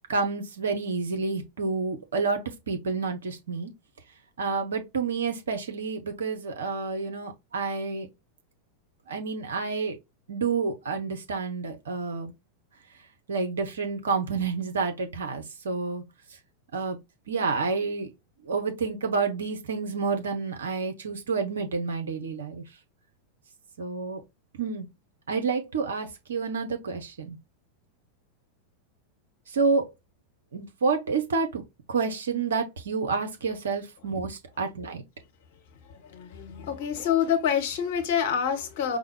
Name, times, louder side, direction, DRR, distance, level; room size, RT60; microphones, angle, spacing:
voice 1, 0.1-3.7 4.4-8.1 9.1-10.0 10.3-12.3 13.3-16.0 16.7-17.0 17.3-18.1 18.4-22.6 23.8-24.2 24.6-24.9 25.3-27.4 29.5-29.9 30.5-31.6 31.9-35.0, right 4 dB, 65° right, 0.8 m, -29 dB
voice 2, 36.1-39.0, left 8 dB, 50° left, 1.1 m, -26 dB
5.0 x 2.2 x 3.2 m
figure-of-eight pair, 90°, 0 cm